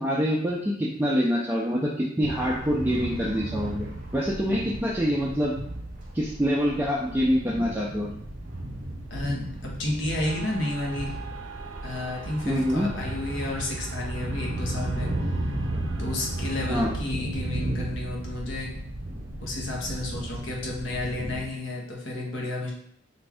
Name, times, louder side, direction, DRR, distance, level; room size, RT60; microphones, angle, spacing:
voice 1, 0.0-3.9 4.1-5.5 6.1-8.1 12.4-12.9 16.7-16.9, equal, 10° right, -5 dB, 0.4 m, -25 dB
sound 1, 2.2-21.4, right 1 dB, 45° right, 0.7 m, -34 dB
voice 2, 9.1-11.1 11.8-15.4 16.0-18.7 19.4-22.7, left 1 dB, 75° left, -2 dB, 0.9 m, -32 dB
sound 2, 10.2-17.0, right 5 dB, 85° right, 0.5 m, -43 dB
3.4 x 2.5 x 3.4 m, 0.69 s
head